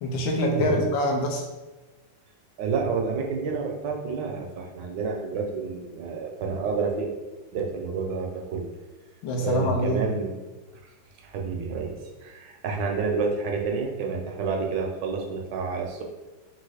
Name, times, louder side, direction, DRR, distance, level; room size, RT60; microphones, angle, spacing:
voice 1, 0.0-1.4 9.2-10.0, equal, 90° left, 1 dB, 1.5 m, -25 dB
voice 2, 2.6-7.1 7.5-8.6 9.4-10.4 10.8-10.9 11.2-16.0, right 4 dB, 70° right, 1 dB, 1.2 m, -29 dB
3.9 x 2.5 x 4.8 m, 1.2 s
omnidirectional pair, 2.1 m